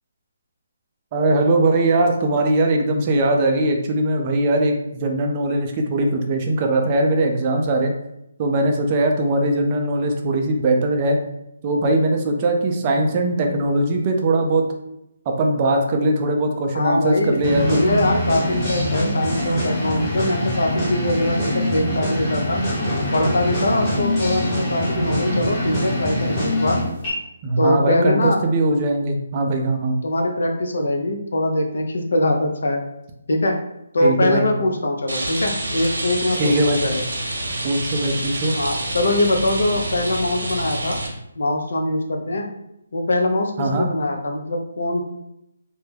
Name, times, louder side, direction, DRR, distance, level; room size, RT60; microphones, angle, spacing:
voice 1, 1.1-7.9 8.4-11.2 11.6-14.7 15.3-17.8 27.4-30.0 34.0-34.5 36.4-36.8 37.6-38.6 43.6-43.9, right 2 dB, 30° right, 3 dB, 0.3 m, -20 dB
voice 2, 16.7-22.6 23.1-26.8 27.6-28.4 30.0-32.8 33.3-33.6 33.9-37.0 38.6-41.0 41.4-42.5 42.9-45.0, left 1 dB, 75° left, 3 dB, 0.5 m, -22 dB
sound 1, 17.4-27.1, equal, 20° left, 0.8 m, -23 dB
Rain, 35.1-41.1, right 1 dB, 80° right, 0.7 m, -27 dB
2.2 x 2.1 x 3.1 m, 0.83 s
hypercardioid pair, 160°, 0 cm